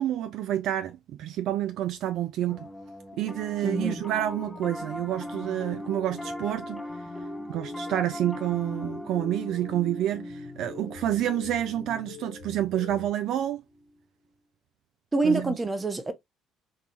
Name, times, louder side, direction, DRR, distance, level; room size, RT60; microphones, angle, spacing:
voice 1, 0.0-2.7 3.2-6.8 7.5-13.6 15.2-15.5, right 12 dB, 60° right, 0.3 m, -29 dB
Piano, 2.5-14.0, left 1 dB, 15° left, 0.7 m, -40 dB
voice 2, 3.6-4.0 15.1-16.1, right 3 dB, 20° right, 0.8 m, -26 dB
sound 1, 3.8-13.1, left 5 dB, 60° left, 1.1 m, -46 dB
3.7 x 2.2 x 2.8 m
hypercardioid pair, 55°, 0 cm